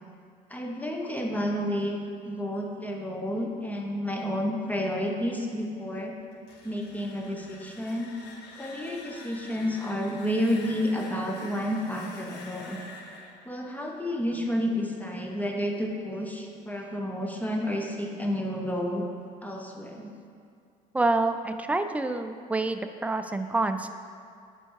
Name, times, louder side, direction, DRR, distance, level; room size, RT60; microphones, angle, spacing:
voice 1, 0.5-1.9 2.3-6.1 6.6-8.1 8.6-12.8 13.5-19.1 19.4-20.1, equal, 10° left, 0 dB, 0.7 m, -30 dB
sound 1, 6.3-15.1, left 3 dB, 90° left, 0.8 m, -47 dB
voice 2, 20.9-23.9, right 2 dB, 10° right, 8 dB, 0.3 m, -27 dB
7.0 x 4.6 x 4.6 m, 2.3 s
cardioid pair, 110°, 17 cm